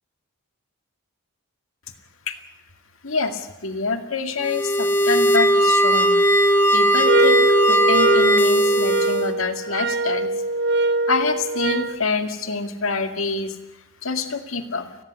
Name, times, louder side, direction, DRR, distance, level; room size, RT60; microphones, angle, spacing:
voice 1, 3.0-6.2 6.7-10.3 11.1-13.6 14.0-14.9, left 4 dB, 65° left, 7 dB, 2.1 m, -26 dB
sound 1, 4.4-9.3, right 1 dB, 10° left, 1.4 m, -18 dB
sound 2, 7.0-12.0, right 2 dB, 55° right, 0.8 m, -23 dB
30.0 x 10.5 x 9.8 m, 0.97 s
head